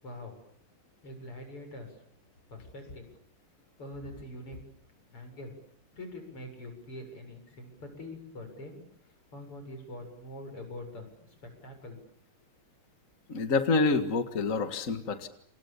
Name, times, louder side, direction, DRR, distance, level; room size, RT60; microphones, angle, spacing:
voice 1, 0.0-0.4 1.0-1.9 2.5-3.1 3.8-4.6 5.1-5.5 6.0-12.0, left 1 dB, 90° left, 6 dB, 8.3 m, -44 dB
voice 2, 13.3-15.3, left 3 dB, 40° left, 8 dB, 2.1 m, -27 dB
29.5 x 28.0 x 7.2 m, 0.64 s
omnidirectional pair, 2.4 m